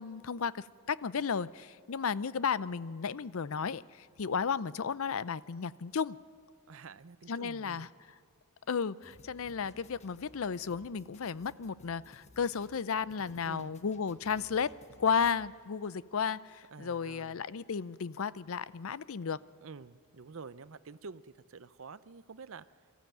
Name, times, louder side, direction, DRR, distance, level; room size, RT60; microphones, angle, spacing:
voice 1, 0.0-6.2 7.3-7.9 8.7-14.7 15.0-19.4, left 6 dB, 70° left, 18 dB, 0.5 m, -33 dB
voice 2, 6.7-7.9 13.4-13.8 16.7-17.4 19.6-22.6, right 4 dB, 65° right, 16 dB, 0.6 m, -48 dB
sound 1, 9.0-15.6, left 2 dB, 30° left, 1.2 m, -59 dB
23.0 x 14.5 x 9.1 m, 2.5 s
head